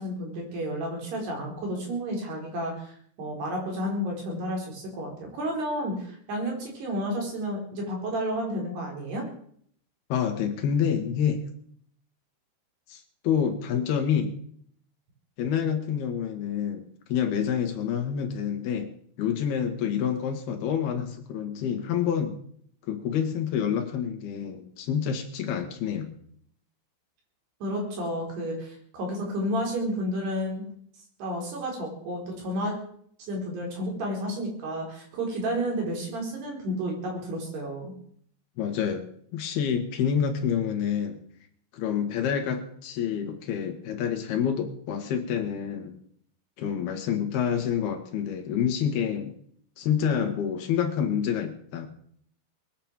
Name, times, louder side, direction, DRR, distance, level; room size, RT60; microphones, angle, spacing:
voice 1, 0.0-9.3 27.6-30.7 31.2-32.8 33.3-37.9, equal, 60° right, 0 dB, 6.4 m, -31 dB
voice 2, 10.1-11.4 12.9-14.4 15.4-22.4 22.9-26.1 38.6-39.1 39.3-41.2 41.7-45.9 46.6-49.3 49.8-51.9, left 8 dB, 60° left, 5 dB, 3.3 m, -28 dB
21.0 x 9.0 x 7.5 m, 0.62 s
omnidirectional pair, 5.5 m